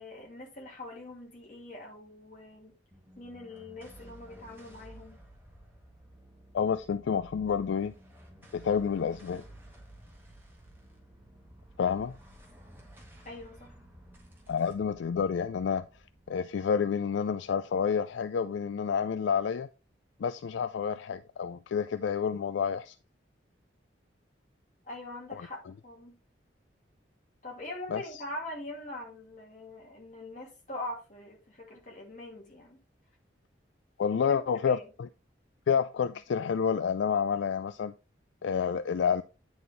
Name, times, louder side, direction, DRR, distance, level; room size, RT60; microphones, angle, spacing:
voice 1, 0.0-2.7 3.2-5.2 13.2-13.7 24.8-26.2 27.4-32.8 34.2-34.9, left 1 dB, 40° left, 2.3 m, -43 dB
sound 1, 2.9-17.5, right 1 dB, 10° right, 1.6 m, -54 dB
voice 2, 6.5-7.9 8.5-9.4 11.8-12.1 14.5-15.8 16.3-19.7 20.2-23.0 25.3-25.5 27.9-28.0 34.0-35.1 35.7-37.9 38.4-39.2, left 6 dB, 75° left, 0.3 m, -29 dB
9.4 x 4.1 x 3.4 m
head